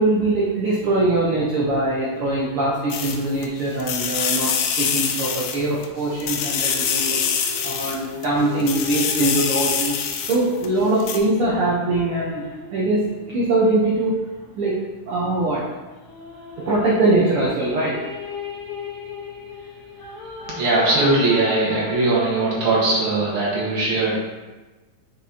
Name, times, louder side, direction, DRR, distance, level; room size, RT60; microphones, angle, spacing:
voice 1, 0.0-7.2 7.6-10.0 10.2-14.1 14.5-14.8 15.1-15.6 16.6-18.0, right 2 dB, 70° right, -5 dB, 1.4 m, -22 dB
sound 1, 2.9-3.5 3.8-5.9 6.2-8.3 8.6-10.7 11.0-11.2, left 7 dB, 85° left, 2.1 m, -24 dB
sound 2, 6.4-14.1 15.9-23.3, left 3 dB, 60° left, 1.9 m, -37 dB
voice 2, 20.5-24.1, right 2 dB, 50° right, -5 dB, 2.1 m, -20 dB
6.0 x 5.8 x 2.8 m, 1.2 s
omnidirectional pair, 3.5 m